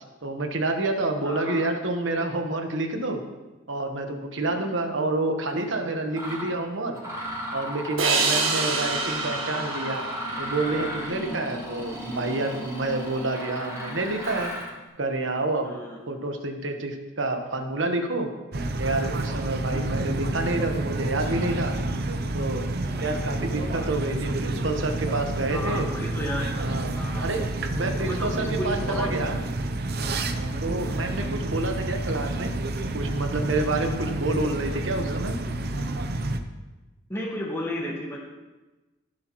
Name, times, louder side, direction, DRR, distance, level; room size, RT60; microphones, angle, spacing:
voice 1, 0.2-3.2 3.7-7.0 7.5-10.0 10.4-14.5 15.0-18.3 18.8-21.7 22.3-22.7 23.0-25.9 26.6-26.9 27.2-27.4 27.7-29.4 30.6-32.5 32.9-35.3, right 2 dB, 70° right, 4 dB, 1.3 m, -28 dB
voice 2, 1.2-1.7 4.4-4.7 8.1-8.5 11.3-11.4 15.6-16.0 19.7-19.8 22.9-23.3 25.5-26.6 26.9-27.3 28.0-29.1 30.8-31.0 37.1-38.2, left 1 dB, 15° left, -3 dB, 1.7 m, -34 dB
Mechanisms, 5.5-5.6 6.1-6.5 6.9-14.8, equal, 15° right, 3.6 m, -34 dB
sound 1, 8.0-11.3, right 4 dB, 90° right, 1.7 m, -27 dB
sound 2, 18.5-36.4, right 2 dB, 50° right, 0.7 m, -29 dB
16.0 x 7.6 x 3.1 m, 1.2 s
head